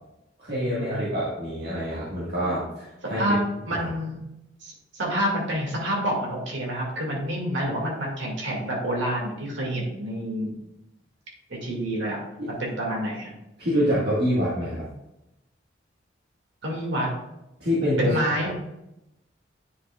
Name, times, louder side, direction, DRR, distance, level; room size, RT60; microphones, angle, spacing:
voice 1, 0.4-3.2 3.7-3.9 12.4-12.5 13.6-14.9 17.6-18.1 18.4-18.5, equal, 55° right, -8 dB, 1.7 m, -26 dB
voice 2, 3.0-3.4 3.6-4.2 4.6-10.5 11.5-12.2 12.6-13.3 16.6-17.1 18.0-18.5, equal, 80° right, -2 dB, 2.3 m, -28 dB
9.6 x 5.5 x 2.4 m, 0.89 s
head